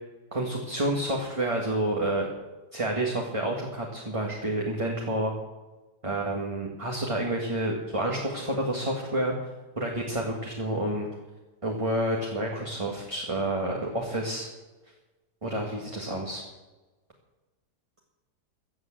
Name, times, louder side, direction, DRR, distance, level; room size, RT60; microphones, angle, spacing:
voice 1, 0.3-2.3 2.7-5.3 6.0-9.3 9.8-11.1 11.6-14.5 15.4-16.4, right 1 dB, 20° right, -1 dB, 1.8 m, -29 dB
15.0 x 7.9 x 7.6 m, 1.2 s
omnidirectional pair, 1.8 m